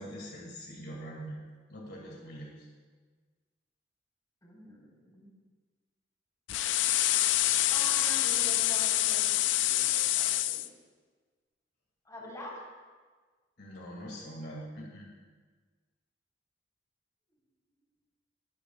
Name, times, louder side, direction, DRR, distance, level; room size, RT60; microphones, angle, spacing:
voice 1, 0.0-1.4 1.7-2.7 13.6-15.1, equal, 65° left, -2 dB, 2.2 m, -43 dB
voice 2, 4.4-5.4 7.7-10.7 12.0-12.7, left 1 dB, 20° left, -4 dB, 3.7 m, -45 dB
sound 1, 6.5-10.7, left 14 dB, 80° left, 0.4 m, -26 dB
20.5 x 11.5 x 2.3 m, 1.4 s
head